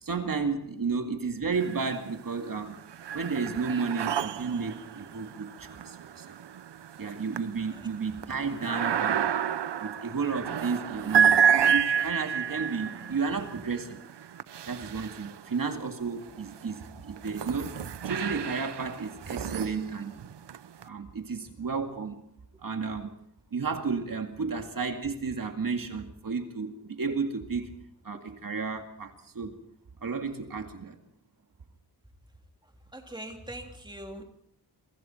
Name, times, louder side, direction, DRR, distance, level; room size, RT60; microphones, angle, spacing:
voice 1, 0.0-2.8 3.1-6.4 7.0-9.3 9.8-14.0 14.7-17.8 18.0-20.2 20.8-22.2 22.6-23.1 23.5-27.8 28.0-29.6 30.0-31.0, right 5 dB, 55° right, 5 dB, 2.3 m, -32 dB
sound 1, 1.5-2.2 2.6-15.7 16.4-20.8, right 8 dB, 90° right, 0.8 m, -30 dB
voice 2, 32.6-34.2, right 1 dB, 10° right, 2 dB, 3.1 m, -42 dB
27.5 x 24.5 x 4.5 m, 0.71 s
wide cardioid pair, 155°, 40 cm